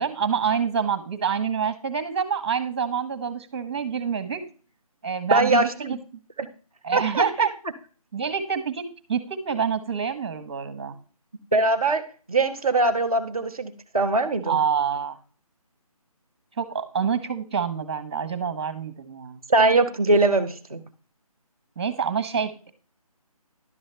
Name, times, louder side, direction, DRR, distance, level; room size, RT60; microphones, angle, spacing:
voice 1, 0.0-4.4 5.0-6.0 6.8-7.5 8.1-11.0 14.5-15.2 16.6-19.4 21.8-22.7, right 7 dB, 15° right, 11 dB, 1.0 m, -27 dB
voice 2, 5.3-5.9 6.4-6.5 6.9-7.2 11.5-12.0 12.3-14.6 19.5-20.8, right 2 dB, 10° left, -10 dB, 0.4 m, -21 dB
11.0 x 7.0 x 3.3 m, 0.38 s
figure-of-eight pair, 170°, 19 cm